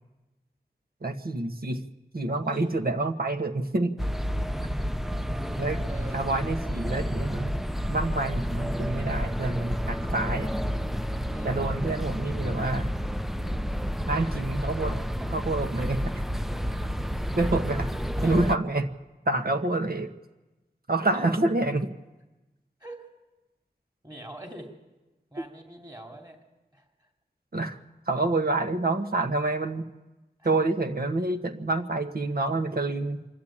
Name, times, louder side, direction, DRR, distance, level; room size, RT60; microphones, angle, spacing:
voice 1, 1.0-1.8 2.1-3.9 5.6-5.8 6.1-7.5 7.9-10.5 11.4-12.9 14.1-15.0 15.3-16.2 17.4-17.9 18.2-18.8 19.2-20.1 20.9-21.9 27.5-27.8 28.1-29.9 30.4-33.2, right 2 dB, 60° right, 6 dB, 1.4 m, -27 dB
sound 1, 4.0-18.6, equal, ahead, 0.7 m, -30 dB
voice 2, 5.9-6.2 11.3-11.7 15.2-15.3 18.2-18.5 21.1-21.4 22.8-23.1 24.0-24.7 25.3-26.4 26.7-27.1 30.4-30.5, right 1 dB, 25° right, 2 dB, 3.0 m, -42 dB
26.0 x 12.0 x 8.7 m, 1.1 s
wide cardioid pair, 50°, 17 cm